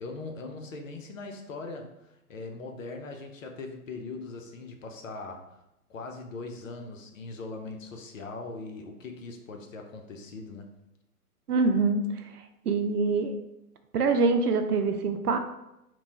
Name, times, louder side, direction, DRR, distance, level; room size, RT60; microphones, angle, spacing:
voice 1, 0.0-5.6 5.9-10.7, left 3 dB, 55° left, 3 dB, 0.7 m, -40 dB
voice 2, 11.5-12.0 12.7-13.4 13.9-15.4, right 4 dB, 80° right, 8 dB, 0.6 m, -24 dB
3.0 x 2.2 x 4.1 m, 0.88 s
figure-of-eight pair, 120°, 46 cm